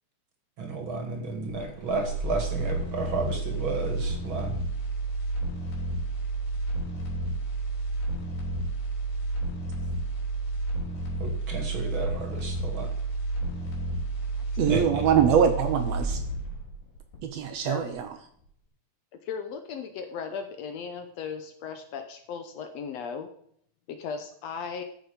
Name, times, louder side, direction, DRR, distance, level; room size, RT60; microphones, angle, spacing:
voice 1, 0.6-4.6 11.2-12.9 14.7-15.1, right 3 dB, 45° right, 4 dB, 2.4 m, -32 dB
sound 1, 1.5-17.6 17.9-18.0, right 2 dB, 85° left, 5.2 m, -31 dB
voice 2, 14.6-16.2 17.2-18.1, right 8 dB, 70° right, 7 dB, 1.8 m, -23 dB
voice 3, 19.1-23.3 23.9-24.8, left 6 dB, 70° left, 7 dB, 1.8 m, -37 dB
13.5 x 7.0 x 5.1 m, 0.65 s
omnidirectional pair, 3.4 m